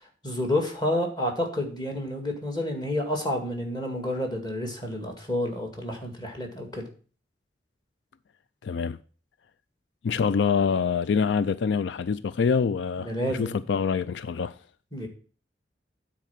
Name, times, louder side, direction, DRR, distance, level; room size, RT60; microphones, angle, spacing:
voice 1, 0.2-6.9 13.0-13.6 14.9-15.1, left 1 dB, 25° left, 2.0 m, -29 dB
voice 2, 8.6-9.0 10.0-14.6, left 6 dB, 85° left, 0.4 m, -25 dB
9.2 x 4.3 x 7.2 m
head